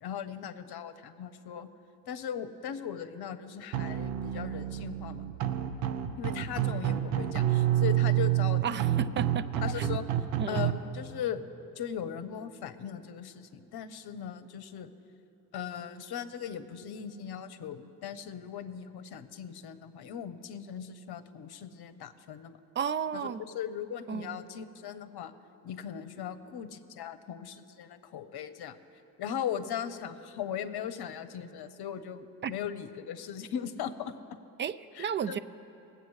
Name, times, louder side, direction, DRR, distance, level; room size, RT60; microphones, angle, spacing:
voice 1, 0.0-1.7 2.1-5.2 6.2-9.1 9.6-10.0 10.5-11.4 11.8-14.9 15.5-22.6 23.1-25.3 25.6-28.8 29.2-34.1 35.0-35.4, left 8 dB, 50° left, 11 dB, 1.0 m, -38 dB
sound 1, 3.7-10.7, right 12 dB, 80° right, 0.9 m, -28 dB
voice 2, 8.6-9.5 9.8-9.9 10.4-10.6 22.8-23.4 24.1-24.4 32.4-32.5 34.6-35.4, right 8 dB, 25° right, 15 dB, 0.3 m, -33 dB
20.5 x 8.2 x 3.2 m, 2.8 s
hypercardioid pair, 60°, 50 cm